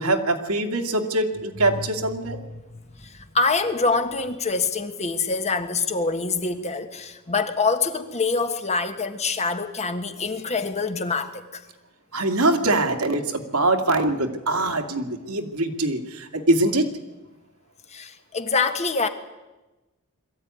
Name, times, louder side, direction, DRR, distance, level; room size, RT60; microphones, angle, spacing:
voice 1, 0.0-2.4 12.1-16.9, right 2 dB, 75° right, 5 dB, 2.3 m, -23 dB
voice 2, 3.0-11.6 17.9-19.1, left 4 dB, 30° left, 7 dB, 1.5 m, -25 dB
22.0 x 15.0 x 9.6 m, 1.1 s
head